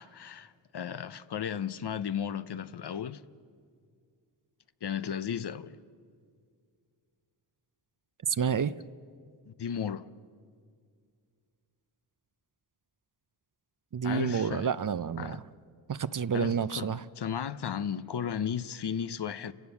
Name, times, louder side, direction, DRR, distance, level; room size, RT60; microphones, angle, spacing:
voice 1, 0.0-3.2 4.8-5.8 9.5-10.1 14.0-14.7 15.2-15.4 16.3-19.5, left 8 dB, 60° left, 0.8 m, -35 dB
voice 2, 8.3-8.7 13.9-15.4 15.9-17.1, right 7 dB, 45° right, 0.6 m, -29 dB
29.5 x 17.0 x 7.2 m
wide cardioid pair, 85°, 45 cm